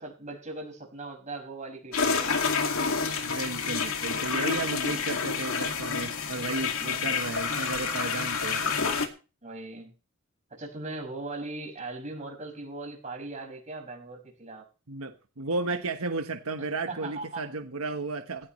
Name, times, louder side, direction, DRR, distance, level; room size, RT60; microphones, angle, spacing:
voice 1, 0.0-2.8 9.4-9.9 10.5-14.7 16.9-17.4, right 2 dB, 35° right, 1 dB, 6.1 m, -39 dB
sound 1, 1.9-9.1, left 5 dB, 75° left, 2.3 m, -29 dB
voice 2, 3.2-8.9 14.9-18.5, right 3 dB, 90° right, 6 dB, 1.3 m, -34 dB
18.0 x 15.0 x 3.2 m, 0.34 s
head